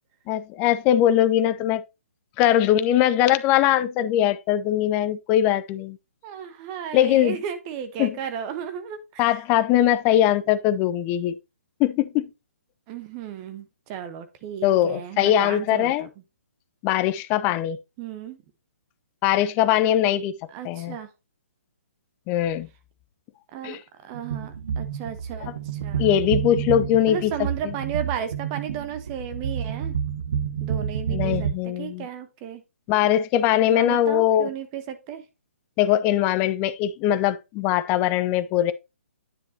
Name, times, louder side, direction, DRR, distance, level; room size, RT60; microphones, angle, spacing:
voice 1, 0.3-1.8 2.4-6.0 6.9-7.4 8.0-8.2 9.2-11.4 11.8-12.3 14.6-16.1 16.8-17.8 19.2-20.3 20.6-21.0 22.3-22.7 23.6-23.8 26.0-27.3 31.1-32.1 32.9-34.5 35.8-38.7, left 11 dB, 20° left, 0.6 m, -21 dB
voice 2, 6.2-9.4 12.9-16.1 18.0-18.4 20.5-21.1 23.5-26.2 27.1-30.0 30.6-32.6 33.7-35.2, right 9 dB, 25° right, 1.0 m, -34 dB
sound 1, 24.1-31.5, right 8 dB, 55° right, 1.1 m, -29 dB
9.9 x 5.9 x 2.8 m
figure-of-eight pair, 130°, 8 cm